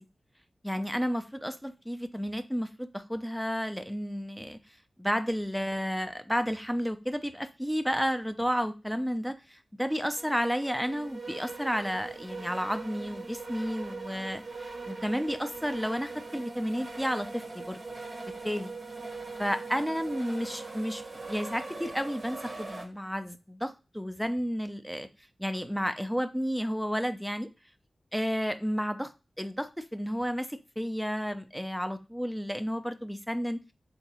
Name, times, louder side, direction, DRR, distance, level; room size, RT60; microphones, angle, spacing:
voice 1, 0.6-4.6 5.0-14.4 14.9-17.8 18.4-18.7 19.4-21.0 21.3-25.1 25.4-27.5 28.1-29.1 29.4-33.6, equal, ahead, 9 dB, 0.4 m, -32 dB
sound 1, 10.2-22.9, right 3 dB, 45° right, 1.0 m, -41 dB
3.5 x 2.9 x 4.2 m, 0.29 s
wide cardioid pair, 105°, 0 cm